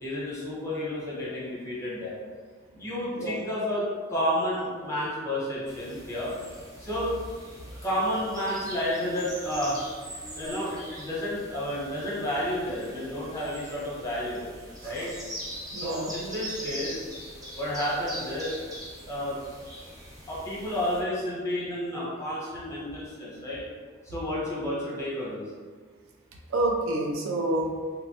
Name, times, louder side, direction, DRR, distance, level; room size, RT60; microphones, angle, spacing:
voice 1, 0.0-2.2 2.7-3.8 4.1-6.3 6.8-7.1 7.8-9.8 10.3-14.4 14.8-15.1 15.7-17.1 17.6-18.5 19.0-19.4 20.3-23.6 24.0-25.5, equal, 15° left, -8 dB, 0.8 m, -31 dB
sound 1, 5.7-21.0, equal, 20° right, 0.5 m, -42 dB
voice 2, 15.7-16.1 26.5-27.7, right 2 dB, 75° right, 0 dB, 0.4 m, -28 dB
2.9 x 2.1 x 2.7 m, 1.6 s
head